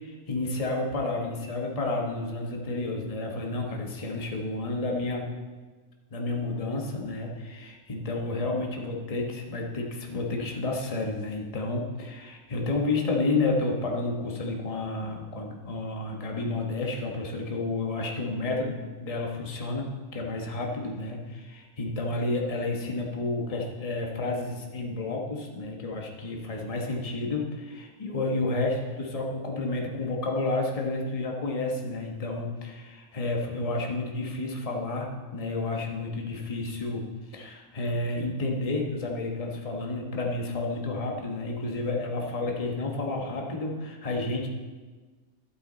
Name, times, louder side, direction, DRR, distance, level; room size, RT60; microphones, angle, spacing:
voice 1, 0.0-5.3 6.1-44.5, left 2 dB, 25° left, 0 dB, 1.3 m, -31 dB
12.0 x 8.6 x 4.0 m, 1.4 s
omnidirectional pair, 1.6 m